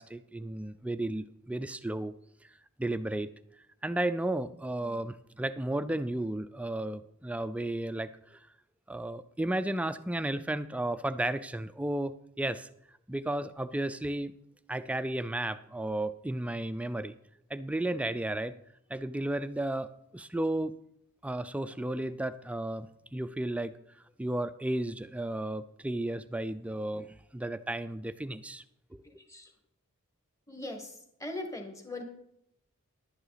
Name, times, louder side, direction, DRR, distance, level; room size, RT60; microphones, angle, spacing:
voice 1, 0.0-2.1 2.8-3.3 3.8-8.5 8.9-12.7 13.1-14.3 14.7-17.2 17.5-18.5 18.9-19.9 20.1-20.7 21.2-23.7 24.2-28.6 28.9-29.0, right 1 dB, 5° right, 12 dB, 0.3 m, -33 dB
voice 2, 29.0-29.5 30.5-32.0, left 2 dB, 15° left, 4 dB, 1.4 m, -40 dB
11.0 x 9.8 x 4.0 m, 0.77 s
head